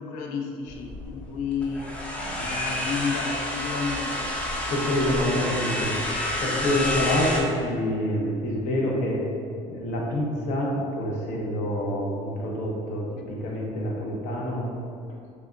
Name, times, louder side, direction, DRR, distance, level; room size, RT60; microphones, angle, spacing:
voice 1, 0.0-2.0 2.4-4.3, left 5 dB, 85° left, 2 dB, 0.5 m, -31 dB
sound 1, 0.7-7.4, left 1 dB, 10° left, 0.4 m, -29 dB
voice 2, 4.7-9.2 9.7-14.7, left 1 dB, 60° left, -3 dB, 0.8 m, -27 dB
3.5 x 3.4 x 2.5 m, 2.4 s
cardioid pair, 140°, 14 cm